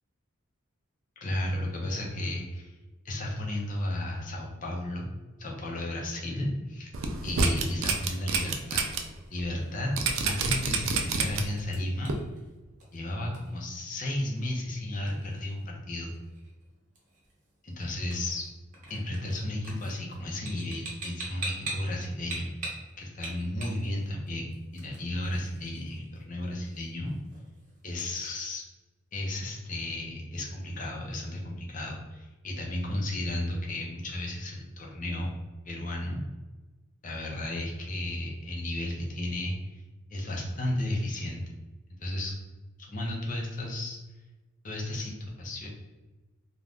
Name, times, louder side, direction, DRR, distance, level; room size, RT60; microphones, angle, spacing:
voice 1, 1.2-2.7 3.0-5.1 5.4-6.9 7.2-8.8 9.3-9.9 10.2-12.1 12.9-16.1 17.6-18.5 18.9-27.1 27.8-28.6 29.1-35.4 35.6-36.2 37.0-39.8 40.1-41.4 41.9-42.3 42.9-44.0 44.6-45.7, left 1 dB, 40° left, -1 dB, 0.6 m, -33 dB
sound 1, 6.9-9.0 9.4-9.5 10.0-11.6 12.1-12.2, right 4 dB, 70° right, 0.4 m, -27 dB
sound 2, 9.0-28.3, right 2 dB, 35° right, 0.8 m, -45 dB
2.5 x 2.2 x 3.4 m, 1.2 s
head